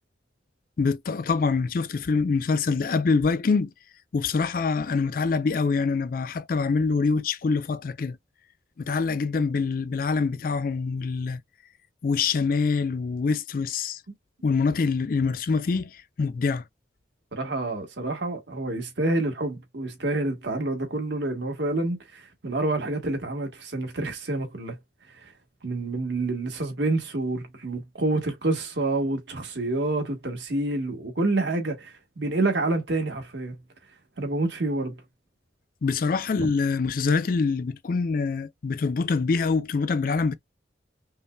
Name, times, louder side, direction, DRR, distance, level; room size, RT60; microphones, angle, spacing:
voice 1, 0.8-3.7 4.1-8.2 8.8-11.4 12.0-14.0 14.4-16.6 35.8-40.4, left 4 dB, 50° left, 0.4 m, -25 dB
voice 2, 17.3-24.8 25.1-25.2 25.6-33.5 34.2-35.0 36.4-36.5, right 2 dB, 75° right, 1.4 m, -28 dB
5.4 x 2.2 x 2.2 m
head